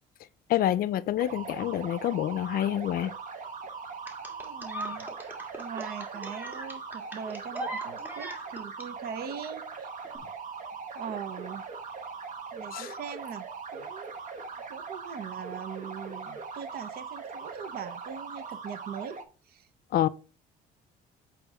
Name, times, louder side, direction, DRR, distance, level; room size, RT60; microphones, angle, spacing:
voice 1, 0.5-3.1 12.7-12.9 19.9-20.1, left 12 dB, 60° left, 0.5 m, -27 dB
sound 1, 1.2-19.2, right 5 dB, 50° right, 1.2 m, -41 dB
sound 2, 4.1-8.9 10.0-10.2, right 1 dB, 10° right, 1.6 m, -39 dB
voice 2, 4.3-5.2 5.6-9.9 10.9-11.7 12.5-14.1 14.7-19.2 19.4-19.7, right 8 dB, 65° right, 0.9 m, -41 dB
8.2 x 3.1 x 4.9 m
cardioid pair, 110°, 17 cm